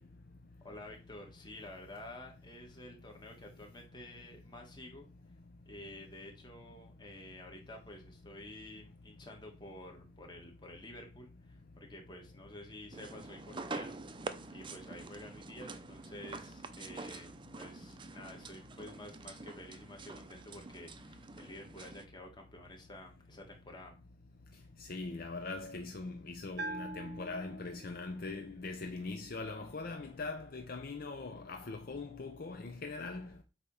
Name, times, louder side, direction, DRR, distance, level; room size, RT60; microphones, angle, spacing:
voice 1, 0.6-5.1 5.6-14.0 14.5-23.9, left 1 dB, 25° left, 1.6 m, -50 dB
sound 1, 12.9-22.1, right 3 dB, 25° right, 0.5 m, -46 dB
voice 2, 24.8-33.4, left 3 dB, 50° left, 0.6 m, -41 dB
Bell, 26.6-28.2, right 2 dB, 60° right, 0.9 m, -43 dB
8.1 x 3.0 x 5.4 m
head